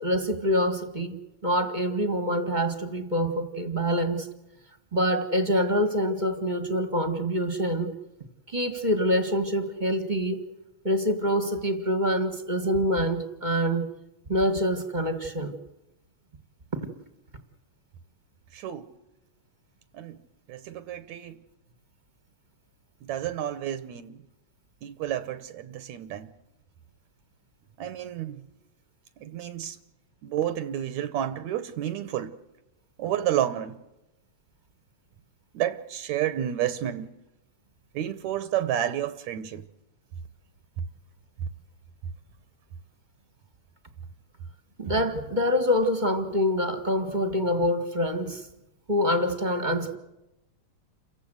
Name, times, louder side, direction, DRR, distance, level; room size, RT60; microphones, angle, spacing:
voice 1, 0.0-4.3 4.9-7.9 8.5-10.4 10.8-13.9 14.3-15.5 44.8-48.4 48.9-50.0, equal, 20° right, 1.5 m, -26 dB
voice 2, 18.5-18.9 19.9-20.2 20.5-21.4 23.0-24.2 24.8-26.3 27.8-28.4 29.2-29.8 30.2-32.3 33.0-33.8 35.5-37.1 37.9-39.6, right 11 dB, 75° right, 2.3 m, -30 dB
29.0 x 15.5 x 8.0 m
omnidirectional pair, 3.3 m